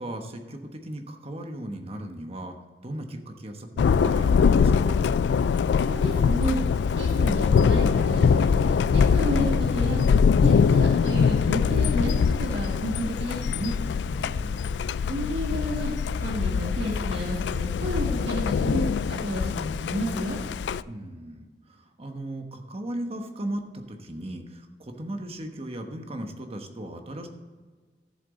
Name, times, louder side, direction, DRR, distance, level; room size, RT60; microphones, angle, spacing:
voice 1, 0.0-2.6 2.8-5.0 14.1-14.8 20.8-27.3, right 1 dB, 35° right, 5 dB, 1.2 m, -37 dB
Thunder, 3.8-20.8, left 6 dB, 75° left, 0.3 m, -23 dB
voice 2, 5.8-6.6 7.0-10.0 10.4-13.7 15.1-15.9 16.2-20.4, equal, 75° right, -2 dB, 2.0 m, -31 dB
13.0 x 7.5 x 4.0 m, 1.4 s
head